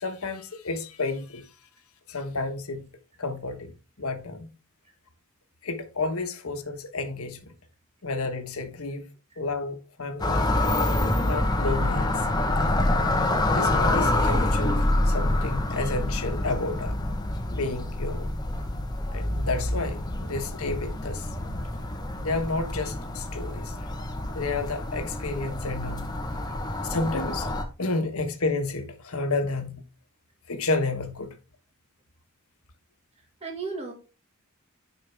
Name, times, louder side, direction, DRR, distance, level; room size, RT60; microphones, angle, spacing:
voice 1, 0.0-1.5 2.1-2.9 3.2-3.7 4.0-4.5 5.6-7.4 8.0-9.1 9.4-10.4 11.2-12.2 13.5-17.0 17.5-18.3 19.1-21.3 22.2-23.7 24.3-26.2 26.8-27.5 27.8-29.8 30.5-31.4, left 3 dB, 80° left, 1.3 m, -31 dB
sound 1, 10.2-27.6, left 1 dB, 20° left, 1.0 m, -27 dB
voice 2, 33.4-33.9, right 4 dB, 30° right, 1.9 m, -35 dB
10.0 x 5.2 x 3.5 m
head